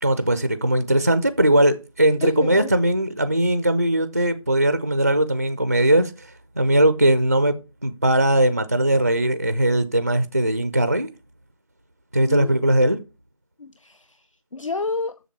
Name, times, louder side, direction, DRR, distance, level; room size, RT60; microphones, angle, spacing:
voice 1, 0.0-6.3 6.6-7.5 7.8-11.1 12.1-13.0, right 1 dB, 25° right, 0.4 m, -19 dB
voice 2, 2.2-2.7 12.3-12.6 13.6-15.2, left 3 dB, 65° left, 0.6 m, -30 dB
7.4 x 6.7 x 4.5 m
figure-of-eight pair, 165°, 18 cm